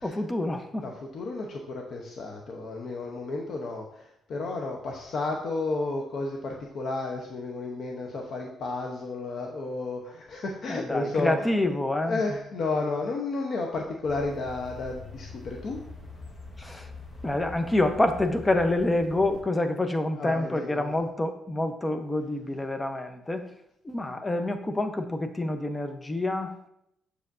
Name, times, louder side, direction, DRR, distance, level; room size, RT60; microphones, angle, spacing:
voice 1, 0.0-0.9 10.7-12.2 16.6-16.9 17.2-23.5 23.8-26.7, left 2 dB, 15° left, 7 dB, 0.9 m, -27 dB
voice 2, 0.8-11.5 12.1-15.8 20.2-20.9, left 3 dB, 60° left, 1 dB, 0.9 m, -32 dB
sound 1, 14.0-19.4, left 3 dB, 35° left, 1.4 m, -44 dB
7.6 x 6.6 x 2.7 m, 0.77 s
cardioid pair, 90°, 0 cm